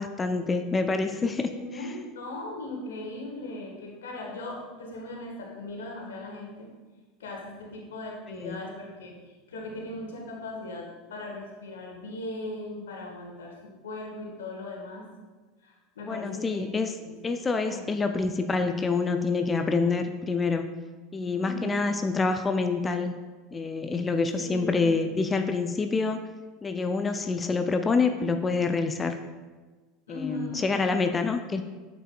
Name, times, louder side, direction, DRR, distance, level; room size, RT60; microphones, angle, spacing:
voice 1, 0.0-1.5 1.8-1.9 8.3-8.6 16.1-16.9 17.2-20.6 21.1-23.1 23.5-26.2 26.6-29.2 30.1-31.6, left 4 dB, 20° left, 7 dB, 0.4 m, -27 dB
voice 2, 1.5-6.7 7.2-15.1 15.6-17.3 17.6-17.9 21.4-21.9 24.3-24.9 30.1-30.7, left 1 dB, 70° left, -1 dB, 1.4 m, -38 dB
9.0 x 6.1 x 2.2 m, 1.3 s
figure-of-eight pair, 75°, 0 cm